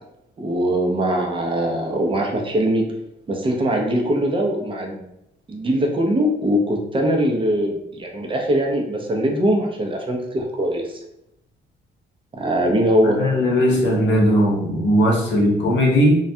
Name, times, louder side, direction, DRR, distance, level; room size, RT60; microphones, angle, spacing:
voice 1, 0.4-2.9 3.3-5.0 5.5-11.0 12.3-13.2, equal, 25° right, 1 dB, 0.5 m, -21 dB
voice 2, 13.0-16.2, equal, 65° left, -2 dB, 0.8 m, -18 dB
2.2 x 2.2 x 2.7 m, 0.80 s
cardioid pair, 90°, 20 cm